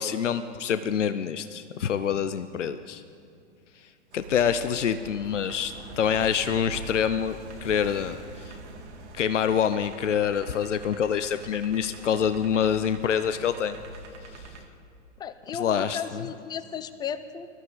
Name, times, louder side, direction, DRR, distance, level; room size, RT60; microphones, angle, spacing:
voice 1, 0.0-3.0 4.1-7.4 7.6-8.2 8.5-8.6 9.1-13.8 15.5-16.2, left 8 dB, 80° left, 11 dB, 0.7 m, -26 dB
sound 1, 4.1-14.7, right 2 dB, 65° right, 2.1 m, -43 dB
voice 2, 15.2-17.5, left 7 dB, 10° left, 13 dB, 0.4 m, -35 dB
21.0 x 13.5 x 3.9 m, 2.4 s
figure-of-eight pair, 100°, 36 cm